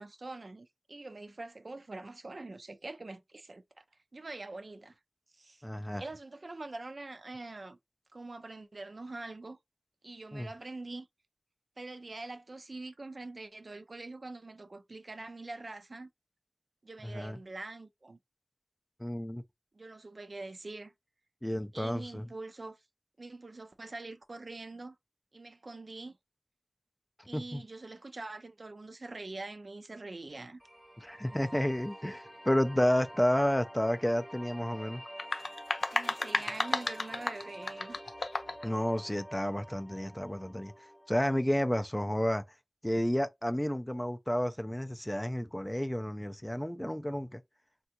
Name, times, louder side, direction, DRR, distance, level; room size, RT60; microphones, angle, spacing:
voice 1, 0.0-3.8 4.1-5.0 5.3-5.6 6.0-7.8 8.1-9.6 10.0-11.1 11.8-16.1 16.8-18.2 19.7-20.9 21.7-22.8 23.2-25.0 25.3-26.2 27.3-30.6 31.2-31.7 35.9-38.0, right 2 dB, 60° right, 0.4 m, -44 dB
voice 2, 5.6-6.0 10.3-10.5 17.0-17.4 19.0-19.4 21.4-22.3 27.3-27.6 31.0-35.0 38.6-40.7 41.1-42.4 42.8-47.4, equal, 10° left, 0.3 m, -31 dB
sound 1, 30.6-41.7, equal, 5° right, 0.7 m, -48 dB
sound 2, 35.1-38.7, left 3 dB, 85° left, 0.4 m, -33 dB
3.5 x 2.2 x 2.8 m
wide cardioid pair, 70°, 0 cm